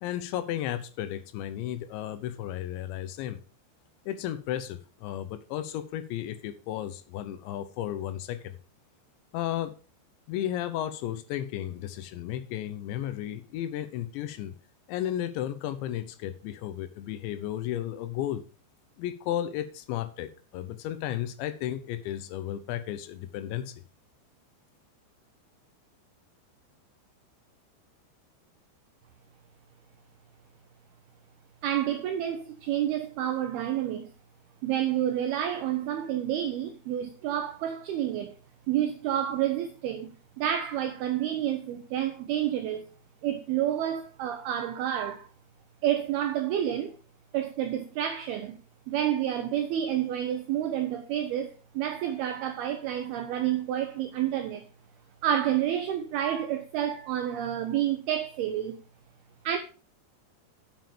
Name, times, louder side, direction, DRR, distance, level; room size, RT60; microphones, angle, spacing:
voice 1, 0.0-3.4 4.1-8.6 9.3-9.8 10.3-14.6 14.9-18.4 19.0-23.8, left 12 dB, 80° left, 2.9 m, -34 dB
voice 2, 31.6-34.1 34.6-38.3 38.7-42.9 43.2-45.3 45.8-47.0 47.3-48.6 48.9-54.7 55.2-58.8 59.4-59.6, right 11 dB, 85° right, 2.2 m, -29 dB
9.2 x 7.4 x 4.9 m
omnidirectional pair, 5.4 m